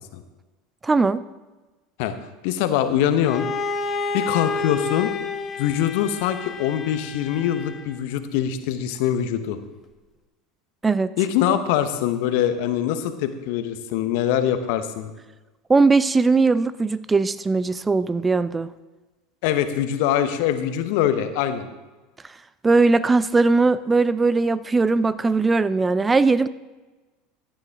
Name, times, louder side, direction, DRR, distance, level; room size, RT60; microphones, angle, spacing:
voice 1, 0.8-1.2 10.8-11.1 15.7-18.7 22.6-26.5, right 3 dB, 20° right, 16 dB, 0.4 m, -19 dB
voice 2, 2.0-3.5 4.1-5.1 5.6-9.6 11.2-15.1 19.4-21.7, left 10 dB, 65° left, 10 dB, 1.0 m, -23 dB
Bowed string instrument, 3.2-8.0, left 4 dB, 30° left, 1.1 m, -30 dB
14.5 x 10.0 x 3.6 m, 1.2 s
hypercardioid pair, 80°, 0 cm